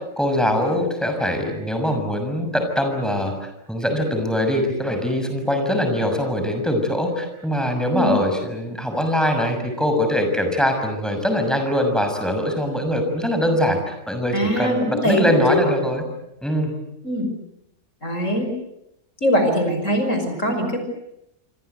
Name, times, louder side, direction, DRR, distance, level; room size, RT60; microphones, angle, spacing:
voice 1, 0.2-16.0 16.4-16.7, equal, ahead, 5 dB, 6.4 m, -22 dB
voice 2, 14.3-15.6 17.0-17.3 18.0-18.5 19.2-20.8, equal, 50° left, 6 dB, 6.2 m, -21 dB
27.0 x 25.5 x 8.2 m, 0.84 s
omnidirectional pair, 1.7 m